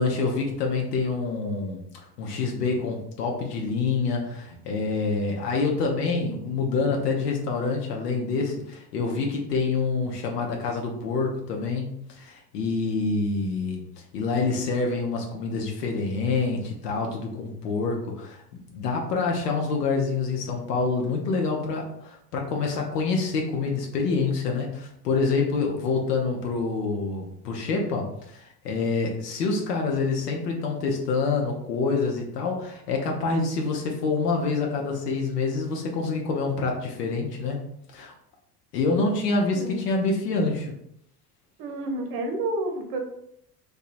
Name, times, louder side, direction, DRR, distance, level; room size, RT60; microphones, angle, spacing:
voice 1, 0.0-13.8 14.1-37.6 37.9-38.1 38.7-40.7, left 4 dB, 80° left, 1 dB, 0.6 m, -27 dB
voice 2, 39.5-39.8 41.6-43.0, right 1 dB, 50° right, 4 dB, 0.7 m, -30 dB
2.7 x 2.2 x 2.5 m, 0.73 s
hypercardioid pair, 70°, 47 cm